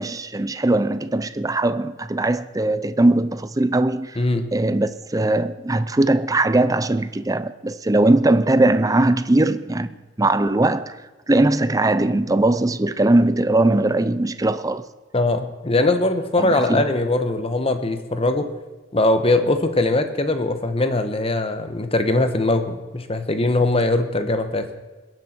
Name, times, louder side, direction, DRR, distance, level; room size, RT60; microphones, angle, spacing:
voice 1, 0.0-4.2 4.5-9.9 10.2-11.0 11.3-14.9 16.4-16.9, right 2 dB, 20° right, 0.6 m, -20 dB
voice 2, 4.2-4.5 15.1-18.5 18.9-24.7, left 2 dB, 30° left, 1.2 m, -21 dB
21.5 x 10.5 x 4.5 m
head